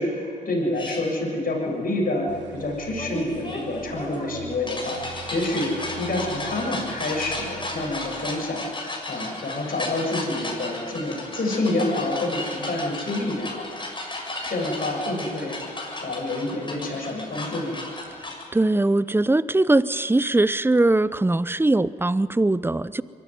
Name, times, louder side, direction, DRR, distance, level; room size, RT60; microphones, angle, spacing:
voice 1, 0.0-8.6 9.1-13.6 14.5-15.6 16.0-17.8, left 2 dB, 50° left, 7.7 m, -28 dB
sound 1, 0.7-1.0 3.0-18.4, left 2 dB, 25° left, 7.2 m, -34 dB
sound 2, 2.3-8.7, right 4 dB, 75° right, 2.7 m, -44 dB
voice 2, 18.5-23.0, right 2 dB, 10° right, 0.7 m, -21 dB
23.0 x 14.0 x 9.6 m
hypercardioid pair, 40°, 19 cm